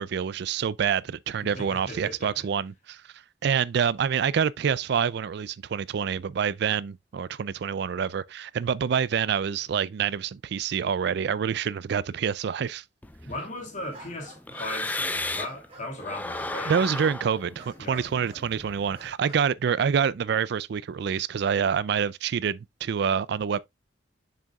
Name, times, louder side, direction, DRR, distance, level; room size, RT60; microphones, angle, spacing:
voice 1, 0.0-3.0 3.4-12.8 16.7-23.6, right 7 dB, 60° right, 0.3 m, -27 dB
voice 2, 1.4-2.4 13.2-16.8 17.8-18.1, left 1 dB, 40° left, 2.9 m, -37 dB
sound 1, 13.0-15.7 16.0-19.1, left 2 dB, 10° left, 0.4 m, -35 dB
sound 2, 13.9-14.8 15.1-15.9 16.3-17.2 17.6-18.5 18.9-19.4, right 2 dB, 30° right, 3.2 m, -49 dB
6.8 x 6.2 x 2.3 m
head